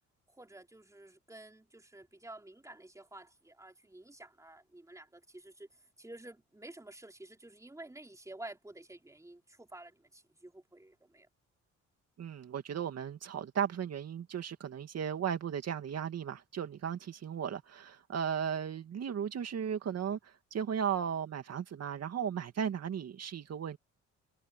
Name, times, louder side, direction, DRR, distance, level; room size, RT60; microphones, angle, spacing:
voice 1, 0.3-5.7 6.0-11.3, right 1 dB, 10° right, 3.8 m, -51 dB
voice 2, 12.2-23.8, right 8 dB, 55° right, 2.3 m, -36 dB
cardioid pair, 90°, 30 cm